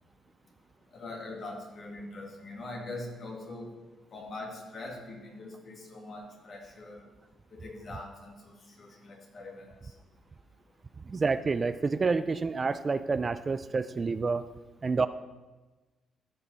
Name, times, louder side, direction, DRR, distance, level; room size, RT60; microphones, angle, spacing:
voice 1, 0.9-3.7 4.1-7.0 7.5-9.9, left 2 dB, 50° left, 0 dB, 2.2 m, -42 dB
voice 2, 11.1-14.5 14.8-15.1, right 4 dB, 35° right, 13 dB, 0.3 m, -28 dB
14.0 x 5.6 x 4.1 m, 1.2 s
cardioid pair, 90°, 0 cm